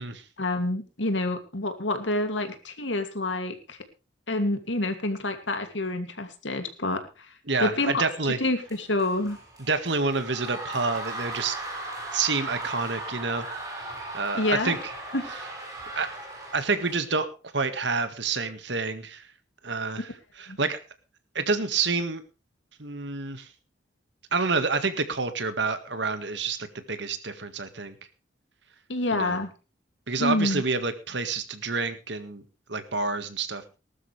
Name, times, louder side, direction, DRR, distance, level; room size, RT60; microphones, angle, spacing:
voice 1, 0.4-3.8 4.3-7.3 7.6-8.0 8.4-9.4 14.3-14.8 15.1-15.2 20.5-20.6 28.9-29.5 30.2-30.6, left 2 dB, 75° left, 7 dB, 2.6 m, -27 dB
voice 2, 7.5-8.4 9.6-11.6 12.1-13.5 14.1-14.9 15.9-16.1 16.5-17.3 17.5-19.3 19.6-20.1 20.4-20.8 21.4-22.2 22.8-23.5 24.3-27.9 29.1-29.4 30.1-32.4 32.7-33.7, right 4 dB, 65° right, 10 dB, 1.8 m, -28 dB
sound 1, 8.7-17.0, right 2 dB, 20° right, 6.3 m, -37 dB
19.5 x 12.5 x 3.4 m, 0.31 s
head